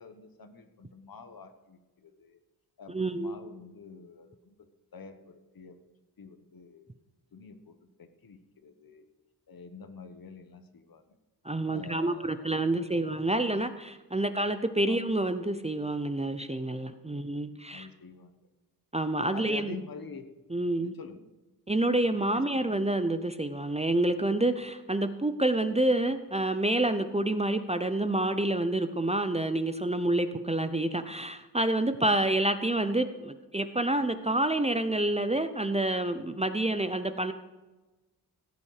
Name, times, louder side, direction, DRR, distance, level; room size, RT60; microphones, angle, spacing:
voice 1, 0.0-2.4 2.8-5.8 6.2-6.9 7.3-9.1 9.5-11.2 11.7-12.5 13.5-13.6 14.1-14.4 14.9-15.0 17.1-18.3 19.3-20.3 20.8-21.3 22.3-22.4, left 5 dB, 60° left, 9 dB, 1.3 m, -47 dB
voice 2, 2.9-3.3 11.4-17.9 18.9-19.7 20.5-20.9 21.7-37.3, right 1 dB, 15° right, 9 dB, 0.6 m, -28 dB
15.5 x 8.7 x 4.9 m, 1.2 s
wide cardioid pair, 125°, 40 cm